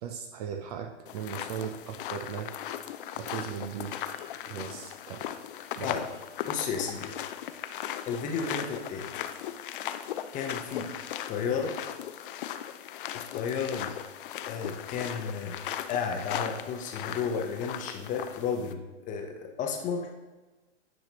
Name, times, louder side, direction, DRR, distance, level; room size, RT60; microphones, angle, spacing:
voice 1, 0.0-2.5 3.2-5.3 5.8-6.0, right 8 dB, 35° right, 5 dB, 0.5 m, -38 dB
sound 1, 1.1-18.7, left 10 dB, 50° left, 0.4 m, -38 dB
voice 2, 6.4-7.2 8.1-9.1 10.3-10.9 11.3-11.7 13.3-14.0 14.5-15.6 15.9-18.8 19.1-20.1, left 6 dB, 20° left, 3 dB, 0.7 m, -32 dB
8.9 x 5.2 x 2.9 m, 1.2 s
hypercardioid pair, 120°, 36 cm